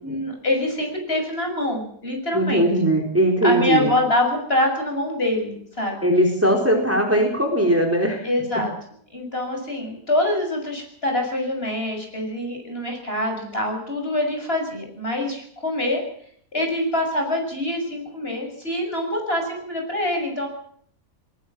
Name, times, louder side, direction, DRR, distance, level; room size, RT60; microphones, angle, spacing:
voice 1, 0.0-2.7 3.4-6.1 8.2-8.7 9.1-16.0 16.5-20.5, left 1 dB, 40° left, 2 dB, 7.2 m, -25 dB
voice 2, 2.3-3.9 6.0-8.3, right 1 dB, 10° right, 2 dB, 4.2 m, -19 dB
21.5 x 20.5 x 7.5 m, 0.63 s
omnidirectional pair, 1.5 m